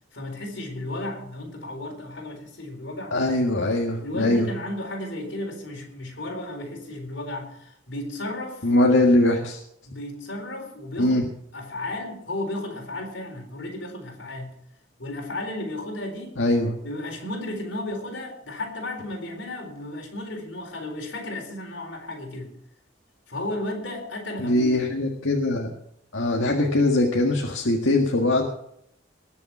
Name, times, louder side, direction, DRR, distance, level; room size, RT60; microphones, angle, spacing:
voice 1, 0.1-3.2 4.0-8.7 9.9-11.2 11.5-14.5 15.0-16.4 16.8-22.5 23.3-24.8, left 1 dB, 70° left, 1 dB, 4.3 m, -34 dB
voice 2, 3.1-4.5 8.6-9.6 11.0-11.3 16.4-16.7 24.4-25.7 26.1-28.5, left 1 dB, 85° left, 0 dB, 1.7 m, -21 dB
20.0 x 7.1 x 6.1 m, 0.74 s
head